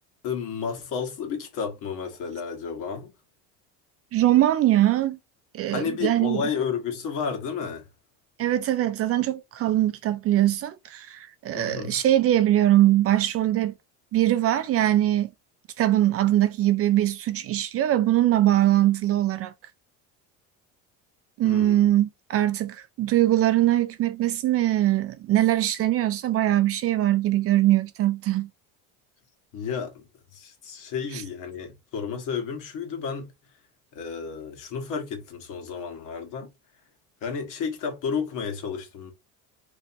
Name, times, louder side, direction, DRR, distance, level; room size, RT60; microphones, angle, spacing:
voice 1, 0.2-3.1 5.7-7.9 11.5-12.0 21.4-21.9 29.5-30.0 30.3-33.3 33.9-36.5 37.2-39.1, left 6 dB, 60° left, 1.5 m, -32 dB
voice 2, 4.1-5.2 5.5-6.4 8.4-13.7 14.1-15.3 15.8-19.5 21.4-28.5, right 13 dB, 40° right, 0.4 m, -22 dB
3.1 x 2.8 x 4.3 m
cardioid pair, 120°, 36 cm